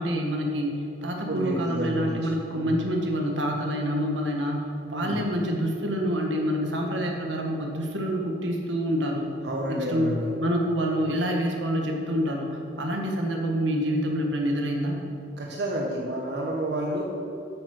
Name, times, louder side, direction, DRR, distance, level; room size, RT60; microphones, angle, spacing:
voice 1, 0.0-9.3 9.8-15.0, equal, 85° right, 1 dB, 1.5 m, -27 dB
voice 2, 1.3-2.2 2.5-2.8 4.9-5.2 9.4-10.3 15.4-17.0, right 1 dB, 60° right, -2 dB, 1.1 m, -30 dB
8.4 x 7.6 x 6.2 m, 2.6 s
head